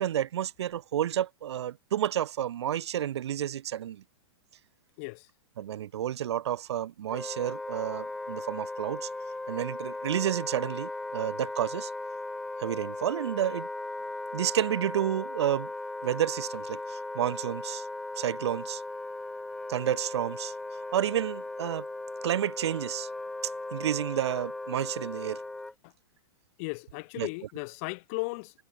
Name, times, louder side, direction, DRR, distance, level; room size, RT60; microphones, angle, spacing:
voice 1, 0.0-4.0 5.6-9.1 9.5-11.9 12.6-13.7 14.3-15.7 16.0-17.9 18.2-18.8 19.7-20.5 20.9-21.9 22.2-23.1 23.7-25.4 27.2-27.3, right 11 dB, 85° right, 1.0 m, -30 dB
Wind instrument woodwind instrument, 7.1-25.7, left 2 dB, 5° left, 0.5 m, -37 dB
voice 2, 26.6-28.5, left 31 dB, 35° left, 1.2 m, -36 dB
supercardioid pair, 170°, 14 cm